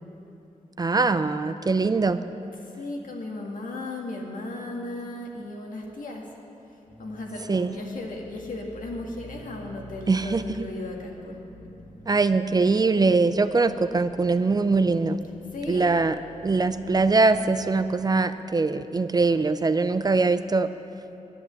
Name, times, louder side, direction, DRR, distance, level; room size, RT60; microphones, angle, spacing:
voice 1, 0.8-2.2 7.5-7.8 10.1-10.7 12.1-15.2 15.7-16.2 16.4-20.7, right 3 dB, 30° right, 12 dB, 0.4 m, -22 dB
voice 2, 2.8-6.3 7.0-11.4 15.5-15.9, left 2 dB, 80° left, 0 dB, 2.0 m, -36 dB
sound 1, 6.9-17.5, left 1 dB, 60° left, 2.4 m, -48 dB
11.0 x 9.9 x 8.0 m, 2.8 s
wide cardioid pair, 115°, 14 cm